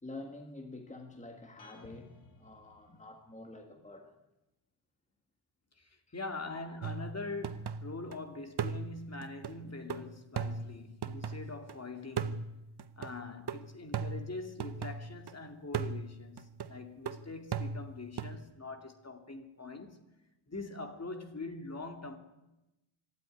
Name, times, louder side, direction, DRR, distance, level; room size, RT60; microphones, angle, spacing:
voice 1, 0.0-2.1 2.4-4.2 6.1-6.6 9.6-9.7, left 2 dB, 15° left, 1.9 m, -48 dB
sound 1, 1.6-3.6, left 3 dB, 85° left, 2.5 m, -58 dB
voice 2, 5.8-12.5 13.0-20.0 20.5-22.2, left 3 dB, 30° left, 2.4 m, -43 dB
sound 2, 6.8-8.2 8.6-11.7 12.2-15.3 15.7-18.4, right 5 dB, 50° right, 1.0 m, -39 dB
25.0 x 12.5 x 9.8 m
wide cardioid pair, 120°, 49 cm